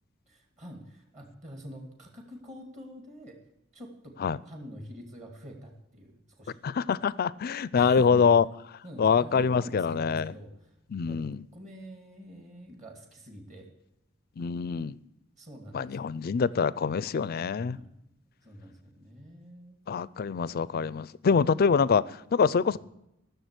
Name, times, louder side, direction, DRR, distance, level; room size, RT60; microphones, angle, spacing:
voice 1, 0.3-3.4 3.7-4.2 4.4-6.6 7.7-8.3 8.8-10.7 11.0-11.2 11.5-13.7 15.4-16.2 17.6-18.1 18.4-19.8, equal, 35° right, 2.3 m, -46 dB
voice 2, 6.6-8.4 9.0-10.3 10.9-11.4 14.4-15.0 15.7-17.8 19.9-22.8, left 6 dB, 45° left, 0.4 m, -25 dB
14.5 x 6.8 x 8.1 m
head